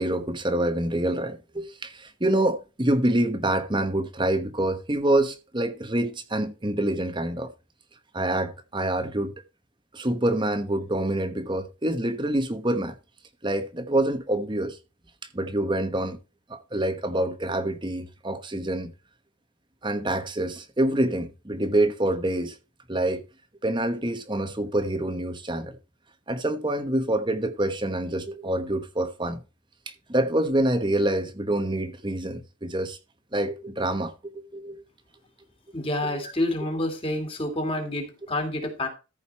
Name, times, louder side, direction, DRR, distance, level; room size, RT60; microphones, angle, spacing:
voice 1, 0.0-7.5 8.1-9.3 9.9-12.9 13.4-14.8 15.3-16.2 16.5-18.9 19.8-22.6 22.9-23.2 23.6-25.8 26.3-29.4 29.9-33.0 33.3-34.8 36.0-36.2, right 1 dB, 20° right, 1.1 m, -26 dB
voice 2, 35.7-38.9, left 1 dB, 25° left, 2.7 m, -28 dB
14.0 x 5.3 x 4.3 m
head